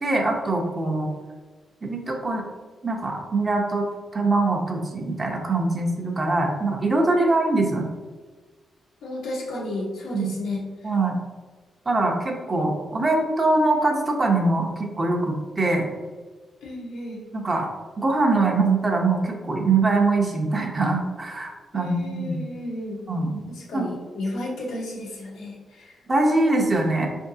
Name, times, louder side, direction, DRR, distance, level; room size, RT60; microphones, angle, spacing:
voice 1, 0.0-1.1 1.8-2.5 2.8-3.8 4.1-7.9 10.1-10.3 10.8-11.1 11.9-15.9 17.3-17.7 18.0-22.4 23.1-23.9 26.1-27.1, right 2 dB, 30° right, 1 dB, 0.8 m, -23 dB
voice 2, 9.0-10.9 16.6-17.2 21.7-23.0 23.5-26.0, left 1 dB, 85° left, -2 dB, 1.1 m, -33 dB
4.6 x 3.5 x 2.7 m, 1.4 s
cardioid pair, 105°, 0 cm